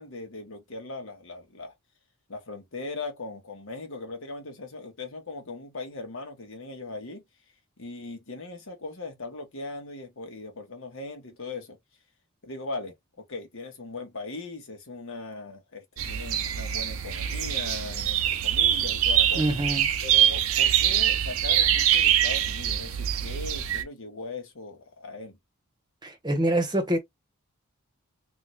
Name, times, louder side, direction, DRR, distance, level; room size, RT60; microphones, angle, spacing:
voice 1, 0.0-1.7 2.3-7.2 7.8-11.8 12.4-19.6 20.0-25.4, left 2 dB, 65° left, 1.2 m, -39 dB
sound 1, 16.0-23.8, right 10 dB, 70° right, 0.6 m, -24 dB
voice 2, 19.3-19.9 26.0-27.0, right 1 dB, 20° right, 1.0 m, -25 dB
3.7 x 2.1 x 3.2 m
head